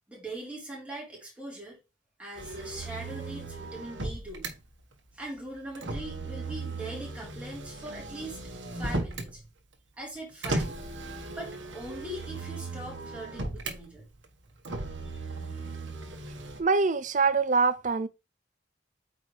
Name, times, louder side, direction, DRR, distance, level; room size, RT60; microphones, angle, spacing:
voice 1, 0.1-1.8 2.2-4.5 5.1-9.5 10.0-10.7 11.4-14.1, right 1 dB, 5° right, 3.8 m, -41 dB
Motor vehicle (road), 2.4-4.5 5.7-9.3 10.4-13.8 14.6-16.6, right 2 dB, 85° right, 1.5 m, -36 dB
voice 2, 16.6-18.1, right 4 dB, 40° right, 0.6 m, -24 dB
8.7 x 4.9 x 3.3 m
head